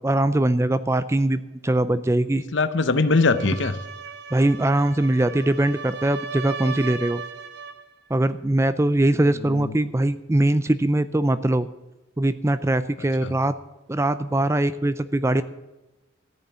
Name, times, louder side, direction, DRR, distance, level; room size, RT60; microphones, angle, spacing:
voice 1, 0.0-2.4 4.3-7.2 8.1-11.7 12.2-13.5 13.9-15.4, right 1 dB, 15° right, 13 dB, 0.4 m, -22 dB
voice 2, 2.3-3.8 9.4-9.7 13.2-13.3, left 3 dB, 60° left, 12 dB, 0.8 m, -22 dB
sound 1, 3.0-7.9, right 6 dB, 55° right, 0.8 m, -37 dB
14.0 x 7.1 x 9.2 m, 1.0 s
head